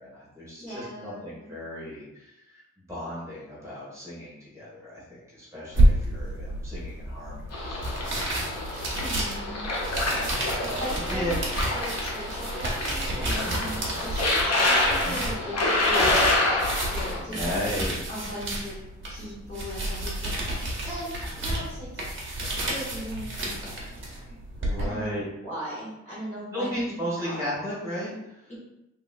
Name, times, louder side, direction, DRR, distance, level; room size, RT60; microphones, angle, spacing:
voice 1, 0.0-2.6 2.9-8.6 9.9-11.4 13.4-13.7 15.0-15.2 17.3-18.0 24.6-25.2 26.5-28.5, equal, 10° right, -8 dB, 1.4 m, -35 dB
voice 2, 0.6-1.5 9.0-9.7 10.7-11.4 11.7-17.5 18.1-18.8 19.1-21.9 22.5-24.4 24.8-27.4 28.5-28.6, equal, 25° left, -10 dB, 0.9 m, -38 dB
sound 1, 5.7-24.8, right 1 dB, 40° right, 0.8 m, -30 dB
sound 2, 7.5-17.2, left 2 dB, 60° left, 0.6 m, -27 dB
3.2 x 2.9 x 2.3 m, 0.87 s
wide cardioid pair, 160°, 29 cm